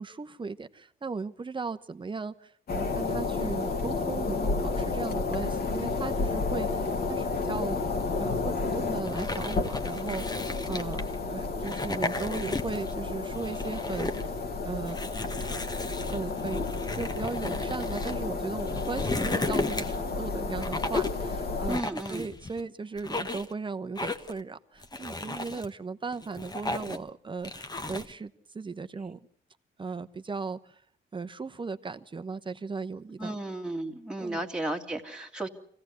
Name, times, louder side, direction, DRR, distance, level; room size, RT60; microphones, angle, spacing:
voice 1, 0.0-7.8 8.2-14.3 14.6-15.0 16.0-21.8 22.1-29.2 29.8-30.8 31.1-33.4 34.2-34.4, right 4 dB, 25° right, 10 dB, 1.0 m, -37 dB
sound 1, 2.7-21.8, left 3 dB, 50° left, 2.2 m, -31 dB
sound 2, 9.0-11.1 11.6-12.9 13.3-14.3 14.9-18.1 18.6-20.1 20.6-21.2 21.7-22.6 23.0-23.5 24.0-24.4 24.8-25.7 26.1-27.1 27.4-28.1, left 3 dB, 20° left, 1.3 m, -34 dB
voice 2, 21.6-22.3 33.2-35.5, right 1 dB, 5° right, 2 dB, 2.3 m, -34 dB
24.5 x 16.5 x 8.1 m, 0.66 s
cardioid pair, 90°, 20 cm